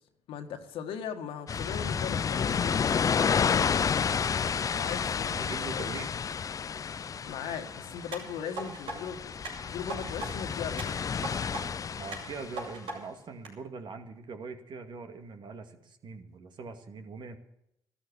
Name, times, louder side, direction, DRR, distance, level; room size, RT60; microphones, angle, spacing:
voice 1, 0.3-3.7 4.7-5.9 7.2-9.4 9.6-11.0, left 7 dB, 75° left, 6 dB, 1.9 m, -39 dB
sound 1, 1.5-12.6, left 6 dB, 40° left, 0.5 m, -30 dB
voice 2, 5.3-6.1 12.0-17.4, right 4 dB, 55° right, 7 dB, 2.1 m, -42 dB
sound 2, 8.1-9.0 9.4-10.3 10.8-11.6 12.1-13.0 13.4-13.5, right 2 dB, 75° right, 6.7 m, -39 dB
13.5 x 13.0 x 7.1 m, 0.78 s
supercardioid pair, 70°, 9 cm